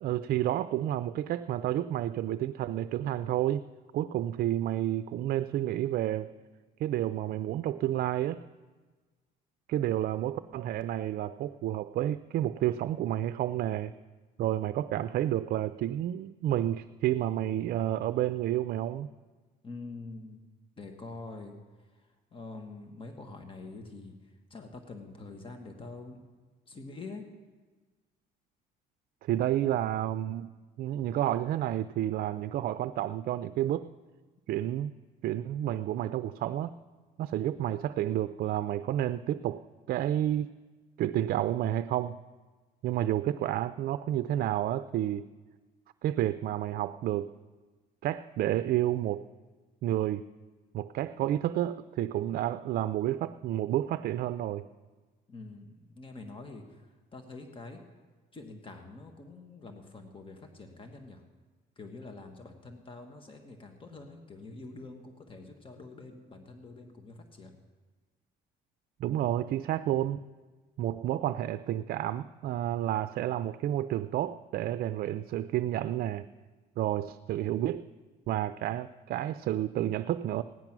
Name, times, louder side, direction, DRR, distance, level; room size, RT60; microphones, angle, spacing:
voice 1, 0.0-3.7 3.9-6.3 6.8-8.4 9.7-13.9 14.4-19.1 29.2-30.5 30.8-33.9 34.5-34.9 35.2-36.7 37.2-39.6 39.9-40.5 41.0-42.2 42.8-45.3 46.0-47.3 48.0-49.3 49.8-50.2 50.7-54.7 69.0-70.2 70.8-76.3 76.8-77.8 78.3-80.4, right 12 dB, 60° right, 13 dB, 0.4 m, -30 dB
voice 2, 19.6-20.4 20.8-21.6 22.3-24.1 24.5-26.2 26.7-27.3 55.3-56.8 57.1-57.8 58.3-61.2 61.8-67.6, left 3 dB, 30° left, 4 dB, 1.6 m, -45 dB
16.5 x 10.5 x 6.1 m, 1.3 s
cardioid pair, 110°, 17 cm